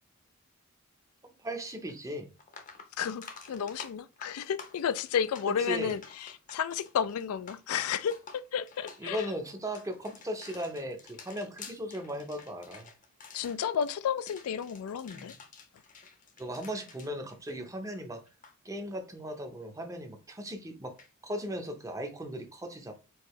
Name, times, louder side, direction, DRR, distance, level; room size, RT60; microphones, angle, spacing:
voice 1, 1.2-2.3 5.6-5.9 9.0-12.9 15.1-15.3 16.4-18.2 18.6-20.9 21.2-22.9, equal, 15° right, 0.6 m, -37 dB
sound 1, 1.9-2.0 2.4-18.0 18.3-18.5 21.0-21.1, left 5 dB, 35° left, 0.7 m, -50 dB
voice 2, 3.0-9.3 13.3-15.3, left 8 dB, 80° left, 0.3 m, -32 dB
4.7 x 2.6 x 3.1 m
head